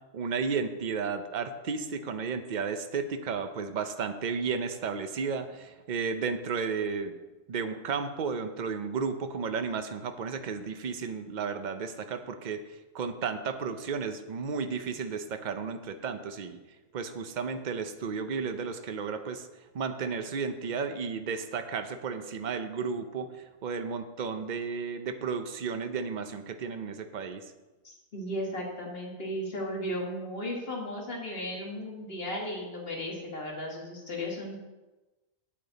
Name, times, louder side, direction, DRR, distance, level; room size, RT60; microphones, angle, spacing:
voice 1, 0.1-7.2 7.5-16.6 16.9-19.5 19.7-27.5, right 5 dB, 55° right, 8 dB, 0.5 m, -33 dB
voice 2, 27.8-34.6, left 1 dB, 40° left, -2 dB, 2.1 m, -35 dB
8.7 x 8.7 x 4.0 m, 1.1 s
omnidirectional pair, 1.5 m